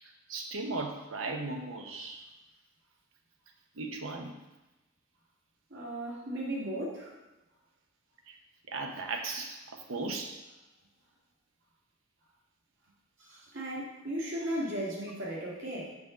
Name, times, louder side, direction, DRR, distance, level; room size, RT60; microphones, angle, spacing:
voice 1, 0.3-2.2 3.8-4.3 8.3-8.4 8.7-9.6 9.9-10.3, right 3 dB, 80° right, 3 dB, 0.9 m, -36 dB
voice 2, 5.7-7.2 13.2-15.9, right 1 dB, 65° right, -4 dB, 2.0 m, -36 dB
6.1 x 3.8 x 5.9 m, 1.0 s
head